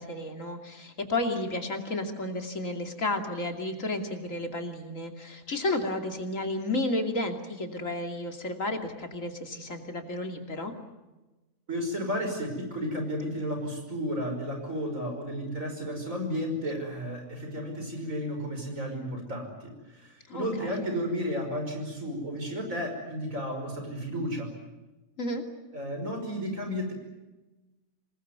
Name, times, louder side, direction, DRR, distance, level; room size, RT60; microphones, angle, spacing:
voice 1, 0.0-10.7 20.3-20.8 25.2-25.4, left 2 dB, 70° left, 4 dB, 3.1 m, -32 dB
voice 2, 11.7-24.5 25.7-26.9, equal, 75° right, 4 dB, 5.9 m, -33 dB
26.5 x 20.5 x 9.5 m, 1.1 s
omnidirectional pair, 1.4 m